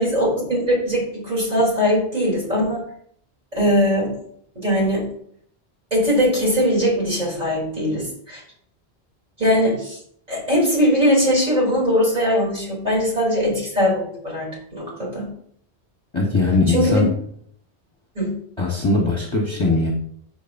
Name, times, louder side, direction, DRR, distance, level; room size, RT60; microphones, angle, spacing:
voice 1, 0.0-2.8 3.5-4.1 4.6-5.1 5.9-8.4 9.4-10.0 10.3-15.3 16.7-17.0 18.2-18.3, equal, 35° right, -5 dB, 3.6 m, -20 dB
voice 2, 16.1-17.1 18.6-19.9, left 3 dB, 25° left, -2 dB, 1.2 m, -20 dB
13.0 x 4.6 x 2.6 m, 0.64 s
omnidirectional pair, 1.1 m